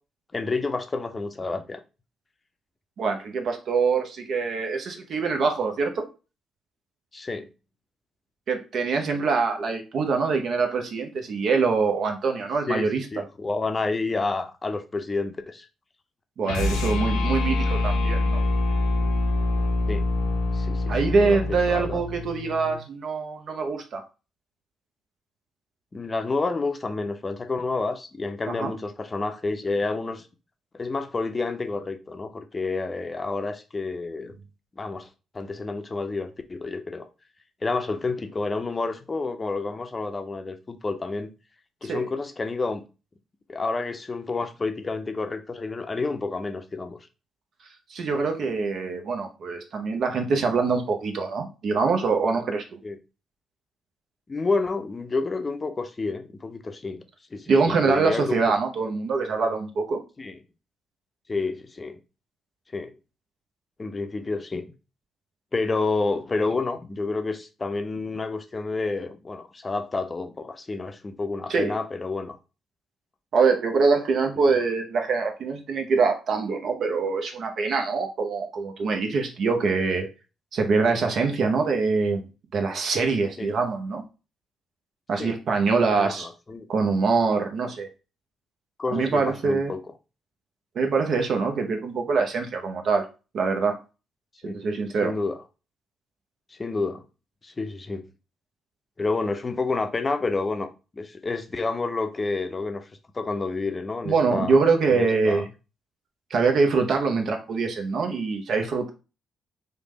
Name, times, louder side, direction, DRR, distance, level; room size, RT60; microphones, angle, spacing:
voice 1, 0.3-1.8 7.1-7.5 12.7-15.7 19.9-20.0 20.5-21.4 21.7-22.0 25.9-30.3 30.7-34.4 34.8-35.1 35.3-37.1 37.6-41.3 41.8-42.8 43.5-47.0 52.8-53.0 54.3-57.0 57.3-58.6 60.2-60.4 61.3-62.0 62.7-62.9 63.8-64.7 65.5-72.4 83.4-83.5 85.2-85.4 86.0-86.7 88.8-89.8 94.4-94.6 95.0-95.4 96.5-97.0 97.4-98.0 99.0-102.9 103.1-104.6 104.9-105.4, left 3 dB, 30° left, 0.5 m, -29 dB
voice 2, 3.0-6.0 8.5-13.1 16.4-18.4 20.9-24.0 28.5-28.7 41.9-42.0 47.9-52.8 57.5-60.0 71.5-71.8 73.3-80.1 80.5-82.2 82.5-84.0 85.1-86.3 86.7-87.9 88.9-89.7 90.7-93.1 93.3-93.8 94.4-95.1 104.0-105.5 106.3-108.9, right 4 dB, 60° right, 0.6 m, -24 dB
sound 1, 16.4-22.8, left 2 dB, 80° left, 0.6 m, -25 dB
3.2 x 2.1 x 3.1 m
hypercardioid pair, 45°, 0 cm